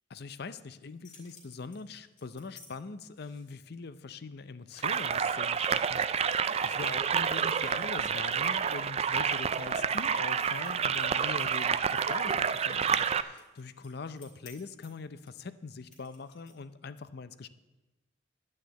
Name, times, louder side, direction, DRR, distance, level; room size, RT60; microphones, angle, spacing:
voice 1, 0.1-17.5, left 4 dB, 55° left, 13 dB, 0.6 m, -43 dB
sound 1, 0.8-2.7 3.1-3.6 4.2-4.3 4.6-5.4 5.9-6.1 6.4-6.6 7.1-8.8 9.3-9.5 10.6-10.9 11.4-12.0 12.3-16.8, left 4 dB, 40° left, 3.0 m, -57 dB
sound 2, 4.8-13.2, right 7 dB, 35° right, 0.4 m, -29 dB
11.0 x 6.6 x 8.2 m, 1.1 s
head